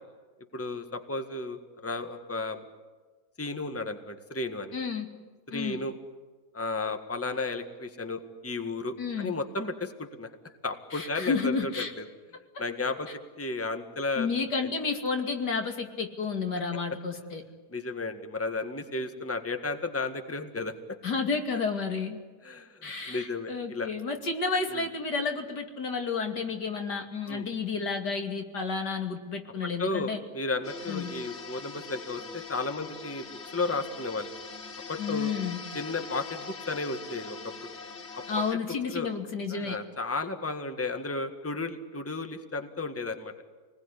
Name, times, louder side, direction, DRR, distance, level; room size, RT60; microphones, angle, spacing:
voice 1, 0.5-2.6 3.4-4.8 5.5-5.9 6.5-10.3 10.6-12.0 12.6-13.1 13.4-14.3 17.7-20.7 22.4-23.9 24.7-24.9 27.3-27.5 29.6-33.2 33.5-34.3 34.9-35.3 35.7-37.5 38.2-38.4 38.9-39.1 39.5-43.3, left 3 dB, 10° left, 7 dB, 1.7 m, -33 dB
voice 2, 4.7-5.1 5.5-5.8 9.0-9.3 10.9-11.9 14.2-17.4 21.0-22.2 22.8-30.2 30.9-31.1 35.0-35.6 38.3-39.8, left 4 dB, 80° left, 4 dB, 3.2 m, -31 dB
Mixed Wind Sound, 30.6-38.5, left 4 dB, 45° left, 1.6 m, -42 dB
28.0 x 20.5 x 10.0 m, 1.4 s
omnidirectional pair, 1.8 m